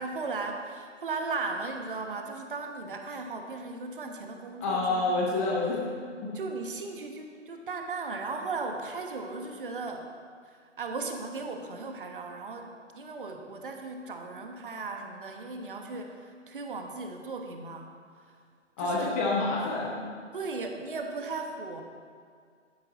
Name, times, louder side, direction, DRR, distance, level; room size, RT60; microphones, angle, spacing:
voice 1, 0.0-5.2 6.3-10.1 10.5-17.9 18.2-18.3 18.8-19.1 20.3-21.8, right 3 dB, 45° right, 4 dB, 1.3 m, -37 dB
voice 2, 4.6-5.8 6.2-6.3 18.8-20.1, left 2 dB, 15° left, -3 dB, 0.8 m, -28 dB
12.0 x 10.5 x 4.1 m, 2.1 s
figure-of-eight pair, 135°, 37 cm